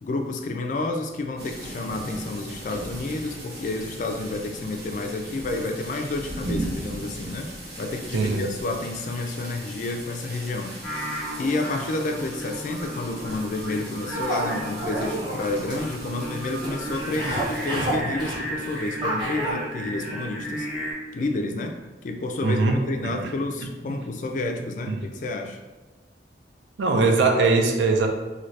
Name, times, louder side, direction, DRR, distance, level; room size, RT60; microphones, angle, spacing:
voice 1, 0.0-7.5 7.8-20.7 21.1-25.6, left 2 dB, 45° left, 4 dB, 0.3 m, -30 dB
sound 1, 1.4-17.6, right 1 dB, 60° right, 0.9 m, -38 dB
voice 2, 8.1-8.5 22.4-23.3 23.9-24.0 24.9-25.1 26.8-28.1, right 3 dB, 90° right, 4 dB, 0.4 m, -22 dB
Singing, 10.8-20.9, equal, ahead, 1.0 m, -34 dB
sound 2, 14.1-19.5, right 1 dB, 25° right, 0.6 m, -30 dB
2.7 x 2.7 x 3.2 m, 1.2 s
head